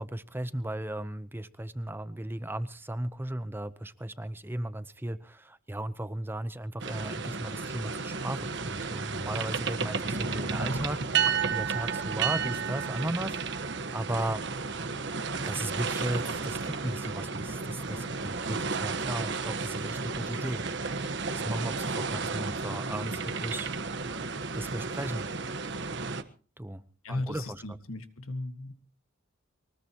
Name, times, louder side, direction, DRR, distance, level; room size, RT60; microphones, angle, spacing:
voice 1, 0.0-14.4 15.4-21.1 21.4-23.7 24.5-25.3 26.6-26.8 27.1-27.6, right 1 dB, 10° right, 13 dB, 0.8 m, -36 dB
sound 1, 6.8-26.2, right 5 dB, 55° right, 1.3 m, -32 dB
voice 2, 27.0-28.7, left 2 dB, 85° left, 9 dB, 1.8 m, -36 dB
23.5 x 20.0 x 3.0 m, 0.40 s
head